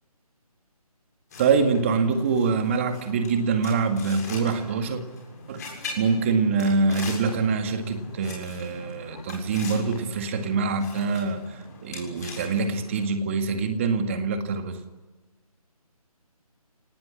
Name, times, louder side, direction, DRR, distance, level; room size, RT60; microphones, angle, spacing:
sound 1, 1.3-13.1, left 3 dB, 25° left, 7.2 m, -41 dB
voice 1, 1.4-5.0 5.5-5.6 6.0-14.8, right 4 dB, 20° right, 7 dB, 2.0 m, -25 dB
29.0 x 19.0 x 10.0 m, 1.3 s
hypercardioid pair, 170°, 19 cm